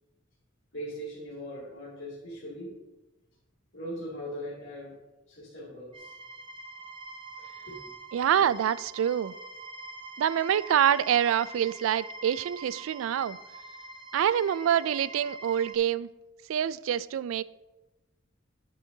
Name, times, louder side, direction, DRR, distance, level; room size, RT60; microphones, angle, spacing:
voice 1, 0.7-2.7 3.7-5.0 5.3-6.1 7.7-7.8, equal, 70° left, -9 dB, 2.4 m, -40 dB
sound 1, 5.9-15.8, right 2 dB, 25° right, 0.6 m, -44 dB
voice 2, 8.1-9.3 10.2-13.4 14.1-16.1 16.5-17.4, right 9 dB, 80° right, 18 dB, 0.3 m, -26 dB
9.4 x 9.1 x 2.7 m, 1.1 s
head